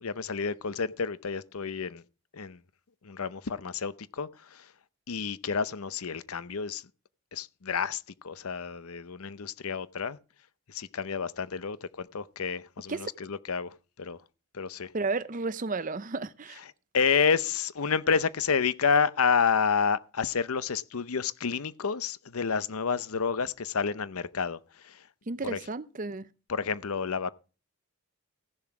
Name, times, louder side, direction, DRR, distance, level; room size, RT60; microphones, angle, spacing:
voice 1, 0.0-2.0 2.3-2.6 3.0-4.6 5.1-6.8 7.3-10.2 10.7-13.7 14.0-14.2 14.5-14.9 16.9-24.6 24.8-24.9 25.4-25.6 26.5-27.3, left 6 dB, 80° left, 0.7 m, -29 dB
voice 2, 14.9-16.6 25.3-26.3, right 3 dB, 35° right, 0.6 m, -33 dB
15.5 x 7.2 x 4.8 m
head